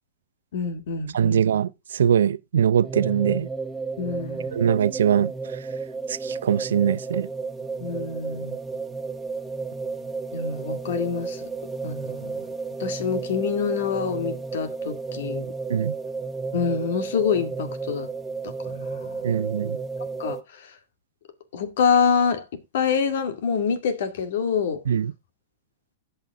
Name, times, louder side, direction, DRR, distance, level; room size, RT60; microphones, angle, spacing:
voice 1, 0.5-1.4 4.0-4.5 7.8-8.6 10.3-11.5 11.8-12.4 12.8-15.5 16.5-18.1 18.4-19.2 20.2-20.7 21.5-22.5 22.7-24.8, left 6 dB, 70° left, 2.1 m, -26 dB
voice 2, 1.1-3.5 4.5-5.6 6.1-7.3 15.7-15.9 19.2-19.8 24.9-25.1, right 8 dB, 85° right, 0.6 m, -22 dB
sound 1, 2.8-20.4, right 4 dB, 5° right, 1.4 m, -32 dB
16.5 x 5.8 x 3.5 m
hypercardioid pair, 130°, 0 cm